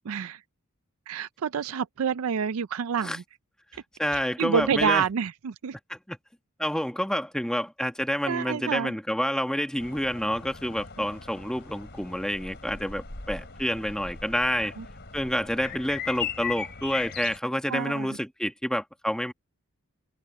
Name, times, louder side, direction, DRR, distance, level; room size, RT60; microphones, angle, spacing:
voice 1, 0.1-0.4 1.1-3.2 4.4-5.8 8.3-8.9 11.0-11.1 14.8-14.9 17.7-18.1, right 7 dB, 70° right, 0.4 m, -28 dB
voice 2, 4.0-5.0 5.9-6.2 6.6-14.7 15.1-19.3, equal, 5° left, 1.4 m, -28 dB
sound 1, 9.8-17.4, left 6 dB, 50° left, 3.9 m, -39 dB
open air
head